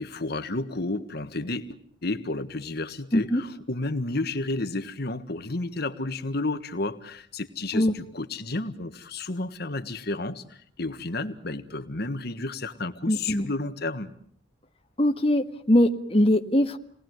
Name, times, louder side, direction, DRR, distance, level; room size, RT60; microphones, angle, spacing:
voice 1, 0.0-14.1, left 2 dB, 55° left, 8 dB, 1.6 m, -31 dB
voice 2, 3.1-3.4 7.7-7.9 13.1-13.5 15.0-16.8, left 1 dB, 30° left, 4 dB, 1.6 m, -22 dB
29.5 x 20.0 x 9.3 m, 0.63 s
head